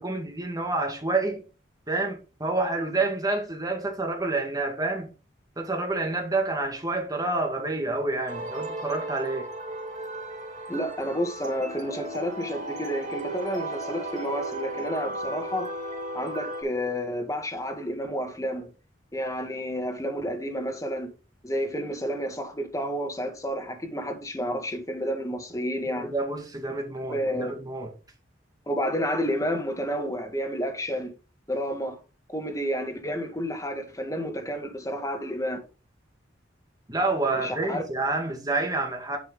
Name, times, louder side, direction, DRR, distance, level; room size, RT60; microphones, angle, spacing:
voice 1, 0.0-1.4 1.9-5.1 5.6-9.5 25.9-27.9 36.9-39.2, right 2 dB, 20° right, 1.9 m, -28 dB
sound 1, 8.3-16.6, right 1 dB, 40° right, 3.5 m, -35 dB
voice 2, 10.7-15.7 16.1-18.7 19.1-21.1 21.4-26.1 26.7-26.8 27.1-27.6 28.7-31.1 31.5-32.0 32.3-35.6 37.3-37.8, equal, 15° left, 2.0 m, -30 dB
10.0 x 6.0 x 3.8 m
head